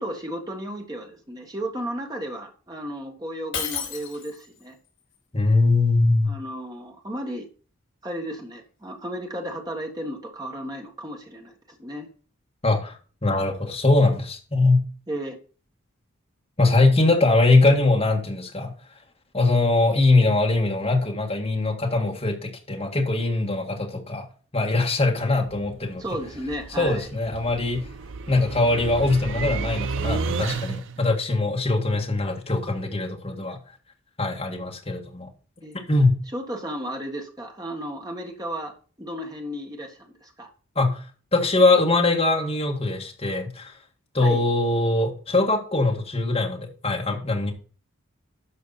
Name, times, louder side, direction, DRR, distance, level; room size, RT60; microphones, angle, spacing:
voice 1, 0.0-4.8 6.3-7.5 8.0-12.1 15.1-15.4 26.0-27.1 33.3-33.6 35.6-35.8 36.3-40.5 44.2-44.4, right 1 dB, 20° right, 2 dB, 1.6 m, -34 dB
Shatter, 3.5-4.6, left 7 dB, 65° left, 4.5 m, -31 dB
voice 2, 5.3-6.3 12.6-14.8 16.6-18.7 19.3-24.2 24.5-26.0 26.8-27.8 28.3-33.6 34.2-35.3 35.9-36.2 40.8-41.0 41.3-43.7 44.1-47.5, left 2 dB, 30° left, 0 dB, 1.9 m, -22 dB
sound 1, 25.4-31.1, right 4 dB, 60° right, 0.5 m, -32 dB
11.5 x 5.8 x 4.2 m, 0.39 s
head